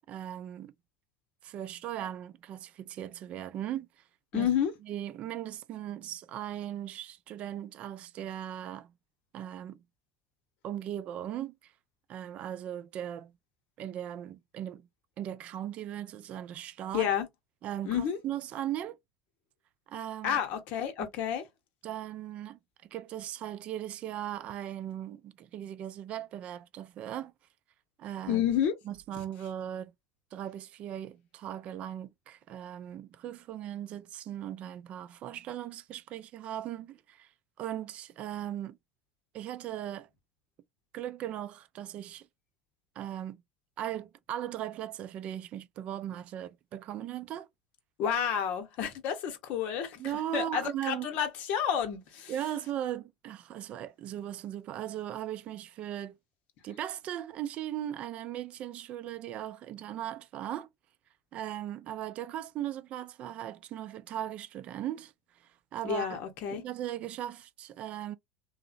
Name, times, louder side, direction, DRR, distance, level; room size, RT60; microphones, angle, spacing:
voice 1, 0.1-0.7 1.4-3.9 4.3-4.5 4.8-8.9 9.3-9.8 10.6-11.7 12.1-13.3 13.8-14.9 15.2-17.1 17.6-19.0 19.9-20.4 21.0-21.1 21.8-22.6 22.9-27.3 28.0-28.4 28.9-29.9 30.3-37.3 37.6-38.8 39.3-40.1 40.9-42.3 43.0-43.4 43.8-47.5 50.0-51.1 52.3-56.2 56.6-60.7 61.3-65.1 65.4-66.2 66.5-68.1, right 11 dB, 50° right, 0.4 m, -38 dB
voice 2, 4.3-4.7 16.9-17.3 17.8-18.2 20.2-21.4 28.3-28.7 48.0-50.0 50.3-52.3 65.8-66.6, left 9 dB, 60° left, 0.8 m, -30 dB
2.6 x 2.1 x 2.5 m
hypercardioid pair, 85°, 3 cm